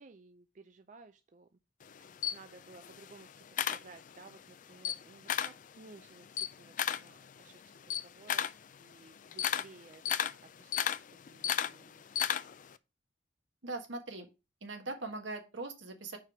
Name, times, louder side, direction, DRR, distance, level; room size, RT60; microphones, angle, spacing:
voice 1, 0.0-1.5 2.0-12.1, right 3 dB, 40° right, 8 dB, 0.4 m, -57 dB
Camera, 1.8-4.4 4.7-5.6 6.0-12.7, left 9 dB, 45° left, 0.4 m, -34 dB
voice 2, 13.6-14.3 14.6-16.2, right 2 dB, 80° right, 4 dB, 1.5 m, -40 dB
5.0 x 4.7 x 5.9 m, 0.28 s
head